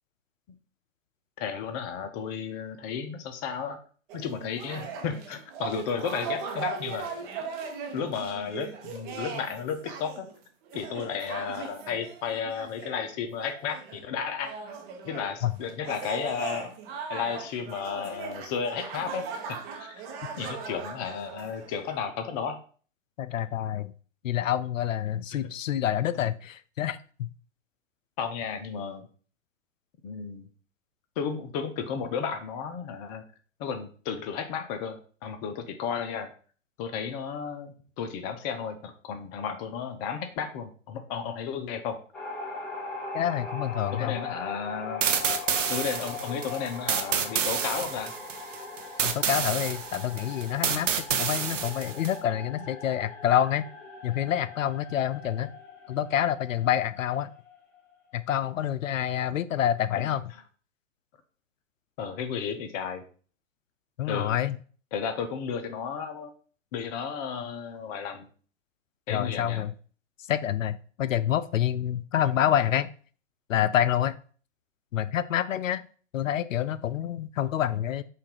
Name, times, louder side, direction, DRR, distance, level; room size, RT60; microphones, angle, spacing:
voice 1, 1.4-3.8 4.1-7.1 7.9-10.3 10.7-14.5 15.0-16.7 17.1-20.0 20.4-22.6 26.2-26.3 28.2-29.1 30.0-30.5 31.2-33.2 33.6-36.3 36.8-42.0 43.9-45.0 45.7-48.1 60.0-60.1 62.0-63.0 64.1-64.4 64.9-66.3 66.7-68.3 69.1-69.6, left 6 dB, 30° left, 8 dB, 0.7 m, -33 dB
sound 1, 4.1-14.1 14.4-22.0, right 5 dB, 40° right, 0.9 m, -39 dB
voice 2, 23.2-23.9 24.2-27.3 43.1-44.2 49.0-53.7 54.0-55.5 55.9-57.3 58.1-60.2 64.0-64.6 69.1-69.7 70.2-72.9 73.5-74.2 74.9-75.9 76.1-78.0, left 10 dB, 75° left, 14 dB, 0.5 m, -27 dB
sound 2, 42.1-58.1, left 4 dB, 5° left, 0.3 m, -40 dB
sound 3, 45.0-52.2, right 8 dB, 70° right, 0.7 m, -29 dB
5.4 x 2.6 x 3.7 m, 0.42 s
figure-of-eight pair, 110°, 39 cm